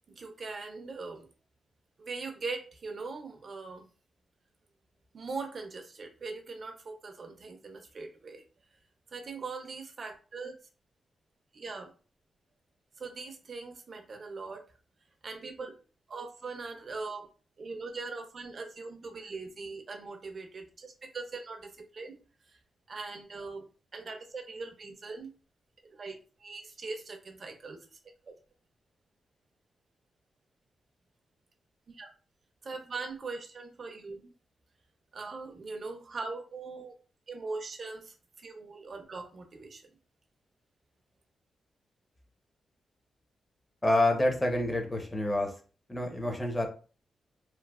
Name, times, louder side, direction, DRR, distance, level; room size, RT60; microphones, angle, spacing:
voice 1, 0.1-1.3 2.0-3.9 5.1-8.4 9.1-10.5 11.5-11.9 13.0-14.7 15.2-15.7 16.1-17.3 17.6-22.2 22.5-22.6 22.9-25.3 25.8-27.8 28.3-28.4 31.9-32.1 32.6-34.3 35.1-36.9 37.3-39.9, right 4 dB, 45° right, 4 dB, 0.5 m, -41 dB
voice 2, 43.8-45.5 45.9-46.7, left 1 dB, 20° left, 2 dB, 0.7 m, -27 dB
3.1 x 2.1 x 2.3 m, 0.37 s
wide cardioid pair, 120°, 0 cm